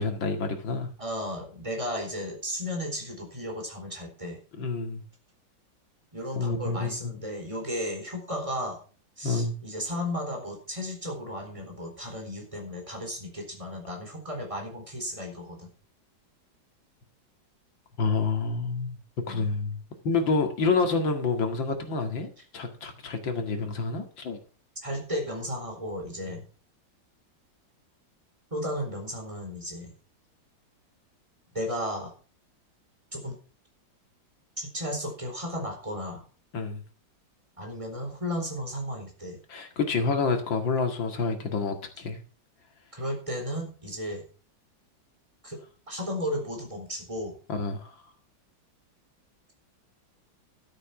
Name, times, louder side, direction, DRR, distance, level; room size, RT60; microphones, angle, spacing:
voice 1, 0.0-0.9 4.6-5.0 6.4-7.1 9.2-9.5 18.0-18.9 19.3-19.8 20.0-24.4 36.5-36.8 39.5-42.2 47.5-47.9, left 4 dB, 85° left, 2.8 m, -28 dB
voice 2, 1.0-4.4 6.1-8.8 9.2-15.7 19.2-19.5 24.8-26.4 28.5-29.9 31.5-32.1 33.1-33.4 34.6-36.2 37.6-39.4 41.4-41.7 43.0-44.2 45.4-45.6 45.9-47.4, equal, 15° right, 4.3 m, -34 dB
12.5 x 8.2 x 5.9 m
omnidirectional pair, 2.0 m